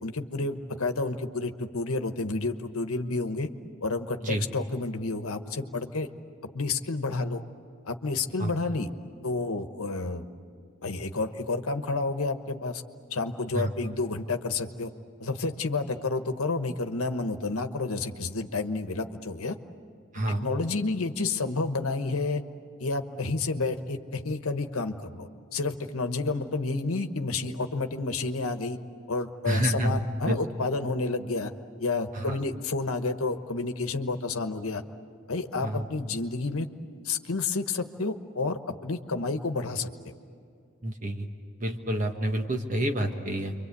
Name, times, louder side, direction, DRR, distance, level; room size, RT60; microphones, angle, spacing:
voice 1, 0.0-3.5 3.8-6.1 6.5-7.4 7.8-8.9 9.2-10.3 10.8-12.8 13.1-14.9 15.2-19.6 20.3-22.4 22.8-28.8 29.1-31.5 31.8-34.8 35.3-36.7 37.0-39.9, left 3 dB, 80° left, 7 dB, 1.2 m, -30 dB
voice 2, 20.1-20.5 29.5-30.0 30.2-30.4 32.1-32.4 35.6-35.8 40.8-41.3 41.6-43.5, right 1 dB, 35° right, 4 dB, 1.3 m, -28 dB
28.0 x 24.0 x 8.4 m, 2.3 s
head